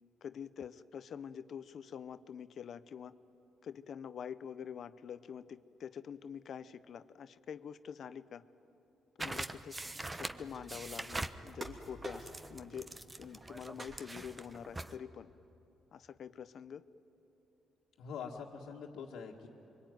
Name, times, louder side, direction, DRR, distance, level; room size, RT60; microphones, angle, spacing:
voice 1, 0.2-3.1 3.6-8.5 9.2-9.8 10.1-12.9 13.2-15.3 15.9-16.9, left 8 dB, 60° left, 14 dB, 0.7 m, -46 dB
sound 1, 9.2-15.0, right 2 dB, 20° right, 1.0 m, -43 dB
sound 2, 10.4-10.9 11.6-12.6 12.9-13.5 13.8-14.5, right 1 dB, 35° right, 2.9 m, -48 dB
voice 2, 18.0-19.5, left 6 dB, 85° left, -4 dB, 2.0 m, -44 dB
26.5 x 23.5 x 9.4 m, 3.0 s
cardioid pair, 90°, 0 cm